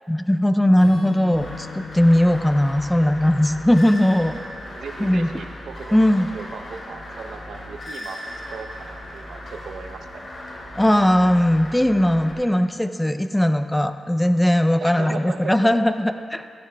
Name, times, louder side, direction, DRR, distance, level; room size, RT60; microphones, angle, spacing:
voice 1, 0.1-4.4 5.0-5.3 5.9-6.3 10.8-16.4, left 1 dB, 5° left, 9 dB, 0.4 m, -19 dB
Acoustic guitar / Strum, 0.8-4.7, left 6 dB, 85° left, 2.8 m, -40 dB
sound 1, 1.3-12.3, left 1 dB, 45° left, 2.4 m, -37 dB
voice 2, 4.7-6.0 6.3-10.3 14.8-15.6, right 5 dB, 80° right, 5 dB, 0.6 m, -37 dB
16.5 x 14.0 x 2.3 m, 2.4 s
wide cardioid pair, 135°, 0 cm